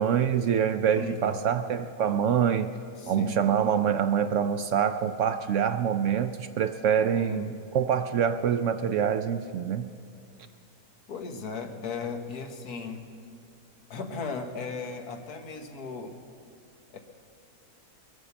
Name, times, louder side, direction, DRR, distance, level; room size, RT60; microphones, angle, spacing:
voice 1, 0.0-2.7 3.1-9.9, right 8 dB, 65° right, 10 dB, 0.8 m, -25 dB
voice 2, 1.0-1.4 3.0-3.5 7.1-7.5 11.1-13.0 13.9-16.1 16.9-17.0, left 5 dB, 80° left, 5 dB, 1.7 m, -36 dB
22.0 x 9.3 x 6.9 m, 2.5 s
omnidirectional pair, 1.6 m